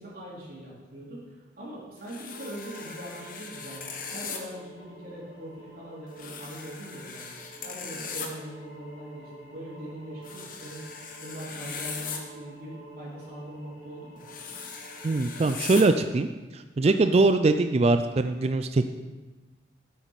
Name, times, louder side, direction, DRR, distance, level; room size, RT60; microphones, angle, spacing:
voice 1, 0.0-7.3 7.6-10.8 11.2-14.2, right 1 dB, 50° right, -6 dB, 3.6 m, -41 dB
sound 1, 2.1-4.4 6.1-8.3 10.2-12.2 14.2-15.8, left 5 dB, 45° left, 1.1 m, -39 dB
sound 2, 2.3-15.8, right 1 dB, 80° left, 3.0 m, -49 dB
voice 2, 15.0-16.3 16.5-18.8, right 3 dB, 30° right, 9 dB, 0.3 m, -22 dB
9.0 x 8.5 x 4.7 m, 1.2 s
head